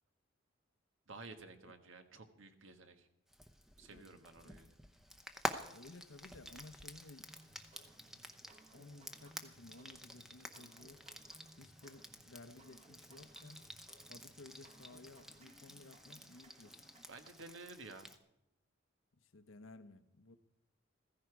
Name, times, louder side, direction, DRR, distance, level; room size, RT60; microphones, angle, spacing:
voice 1, 1.1-3.1 3.8-4.7 17.1-18.1, right 3 dB, 80° right, 7 dB, 1.6 m, -53 dB
Frying (food), 3.3-18.2, equal, ahead, 0.8 m, -49 dB
voice 2, 3.9-4.5 5.1-5.2 5.7-7.3 8.1-8.3 8.7-11.0 11.6-13.6 14.1-16.8 19.2-20.4, left 2 dB, 85° left, 9 dB, 1.1 m, -56 dB
sound 1, 7.3-17.0, right 1 dB, 35° right, 1.4 m, -63 dB
15.0 x 15.0 x 4.7 m, 0.85 s
head